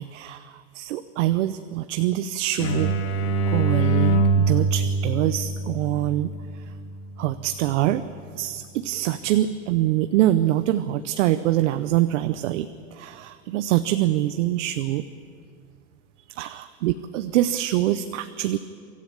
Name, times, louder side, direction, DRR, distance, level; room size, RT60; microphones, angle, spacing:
voice 1, 0.0-2.9 3.5-6.3 7.2-8.0 8.3-15.1 16.3-18.6, right 13 dB, 65° right, 12 dB, 0.7 m, -24 dB
sound 1, 2.6-8.1, right 3 dB, 60° left, 2.2 m, -24 dB
24.0 x 14.0 x 8.8 m, 2.4 s
supercardioid pair, 170°, 40 cm